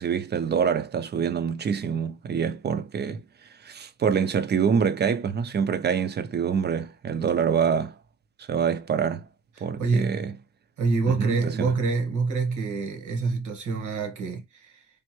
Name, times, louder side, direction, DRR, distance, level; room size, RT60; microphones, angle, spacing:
voice 1, 0.0-3.2 3.6-7.9 8.4-9.3 9.6-10.3 11.1-11.7, right 7 dB, 35° right, 0.5 m, -26 dB
voice 2, 9.6-10.2 10.8-14.8, right 4 dB, 75° right, 1.5 m, -26 dB
3.4 x 2.5 x 3.0 m
cardioid pair, 90°, 30 cm